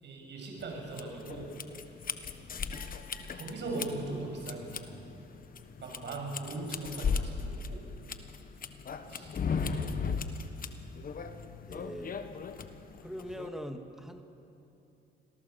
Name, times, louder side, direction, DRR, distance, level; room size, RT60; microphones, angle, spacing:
voice 1, 0.0-1.5 3.3-4.9 5.8-7.8 9.1-9.3 9.6-10.1, right 2 dB, 65° right, 0 dB, 6.9 m, -39 dB
sound 1, 0.6-13.5, left 5 dB, 45° left, 1.3 m, -37 dB
voice 2, 2.4-2.9 11.7-12.2 13.0-14.2, equal, ahead, 5 dB, 2.0 m, -43 dB
26.5 x 17.5 x 7.1 m, 2.9 s
cardioid pair, 90°, 20 cm